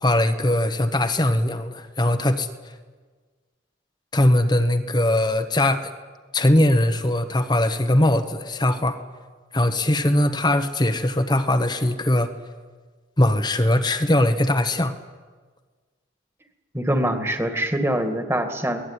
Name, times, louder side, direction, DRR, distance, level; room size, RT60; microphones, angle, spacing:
voice 1, 0.0-2.5 4.1-5.9 6.3-9.0 9.5-12.3 13.2-14.9, left 1 dB, 20° left, 7 dB, 1.2 m, -20 dB
voice 2, 16.7-18.8, right 1 dB, 15° right, 7 dB, 2.2 m, -24 dB
23.0 x 19.0 x 9.9 m, 1.4 s
head